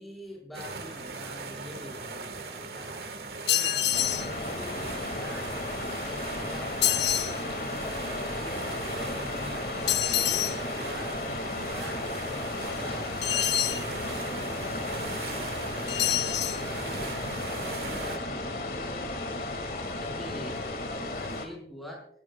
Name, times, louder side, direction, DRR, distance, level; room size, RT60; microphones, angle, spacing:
voice 1, 0.0-3.1 3.5-5.5 6.0-14.6 15.3-17.0 17.6-19.1 19.9-22.1, left 1 dB, ahead, -1 dB, 5.2 m, -45 dB
sound 1, 0.5-18.2, right 3 dB, 60° right, 1.5 m, -39 dB
sound 2, 3.5-4.3 6.8-7.3 9.9-10.6 13.2-13.8 15.9-16.6, left 12 dB, 75° left, 0.7 m, -26 dB
sound 3, 3.9-21.5, left 2 dB, 55° left, 2.0 m, -34 dB
20.0 x 17.0 x 2.3 m, 0.66 s
head